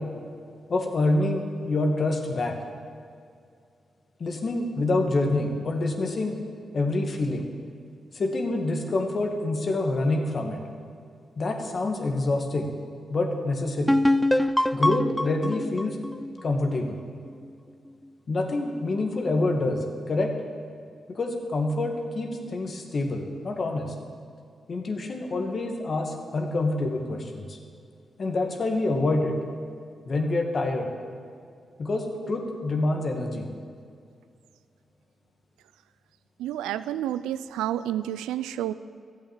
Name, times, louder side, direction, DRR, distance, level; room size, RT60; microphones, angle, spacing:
voice 1, 0.7-2.6 4.2-6.4 6.7-7.5 8.1-10.6 11.4-12.7 13.1-14.0 14.7-16.0 16.4-17.0 18.3-20.3 21.1-23.9 24.7-27.6 28.2-29.4 30.1-30.9 31.8-33.5, left 2 dB, 55° left, 3 dB, 1.9 m, -26 dB
sound 1, 13.9-17.5, left 1 dB, 5° left, 0.4 m, -25 dB
voice 2, 36.4-38.7, right 12 dB, 90° right, 15 dB, 0.3 m, -30 dB
13.5 x 8.2 x 7.6 m, 2.3 s
supercardioid pair, 45°, 0 cm